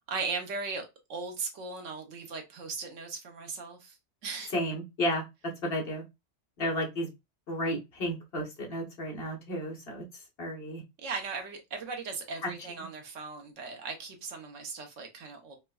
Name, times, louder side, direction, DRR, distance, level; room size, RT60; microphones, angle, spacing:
voice 1, 0.1-4.0 4.2-4.5 11.0-15.6, right 4 dB, 90° right, 1.2 m, -38 dB
voice 2, 4.5-5.2 5.6-6.0 6.6-7.1 7.5-10.0 10.4-10.8, equal, 55° left, 1.3 m, -32 dB
4.4 x 2.1 x 2.2 m
omnidirectional pair, 1.2 m